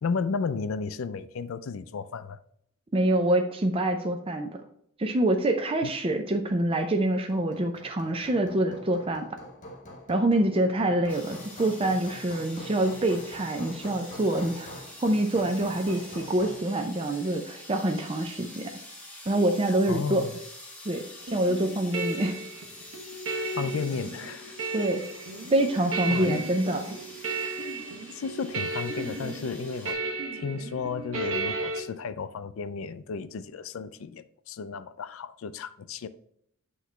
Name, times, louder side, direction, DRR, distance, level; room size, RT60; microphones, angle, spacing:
voice 1, 0.0-2.4 5.8-5.9 19.9-20.4 23.3-24.6 26.1-26.5 28.1-30.0 30.3-36.1, left 5 dB, 70° left, 0.4 m, -33 dB
voice 2, 2.9-4.5 5.0-9.3 10.1-14.7 15.0-18.7 19.3-20.3 20.9-21.0 21.3-22.4 24.7-25.0 25.5-27.0, right 1 dB, 25° right, 0.5 m, -26 dB
Hammer, 7.1-16.7, equal, 40° left, 1.3 m, -45 dB
sound 1, 11.1-29.9, left 1 dB, 5° left, 1.3 m, -46 dB
sound 2, 21.3-31.8, right 3 dB, 65° right, 1.2 m, -34 dB
8.0 x 3.1 x 4.3 m
head